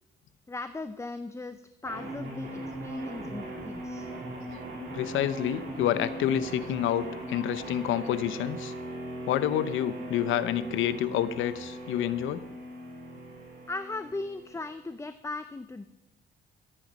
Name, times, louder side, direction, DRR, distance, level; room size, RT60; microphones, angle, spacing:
voice 1, 0.5-4.1 13.7-15.9, left 3 dB, 15° left, 11 dB, 0.6 m, -38 dB
sound 1, 1.9-14.8, right 1 dB, 60° right, 5.9 m, -39 dB
voice 2, 4.9-8.7 9.3-12.4, left 11 dB, 85° left, 14 dB, 0.8 m, -28 dB
14.5 x 9.2 x 5.3 m, 0.90 s
cardioid pair, 90°, 20 cm